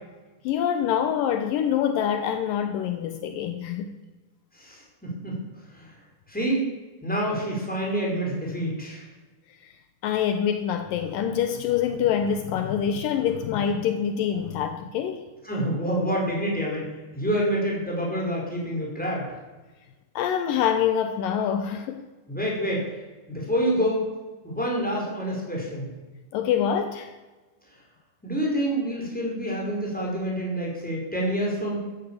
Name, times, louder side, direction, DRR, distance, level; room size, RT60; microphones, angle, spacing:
voice 1, 0.4-3.9 9.6-9.7 10.0-15.2 20.2-22.0 26.3-27.1, left 8 dB, 85° left, 8 dB, 2.0 m, -25 dB
voice 2, 4.5-5.3 5.7-5.9 6.3-6.7 7.0-9.0 15.4-19.3 22.3-22.8 23.3-24.0 24.4-25.9 28.2-31.8, equal, ahead, -3 dB, 5.1 m, -27 dB
15.0 x 12.0 x 7.5 m, 1.2 s
omnidirectional pair, 5.1 m